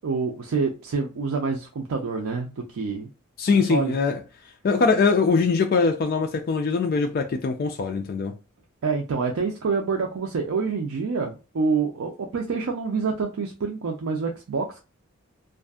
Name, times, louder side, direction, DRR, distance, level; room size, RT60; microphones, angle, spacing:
voice 1, 0.0-3.1 3.7-4.0 8.8-14.8, right 4 dB, 80° right, 0.4 m, -27 dB
voice 2, 3.4-4.2 4.6-8.3, left 4 dB, 45° left, 0.3 m, -22 dB
2.6 x 2.4 x 2.3 m
head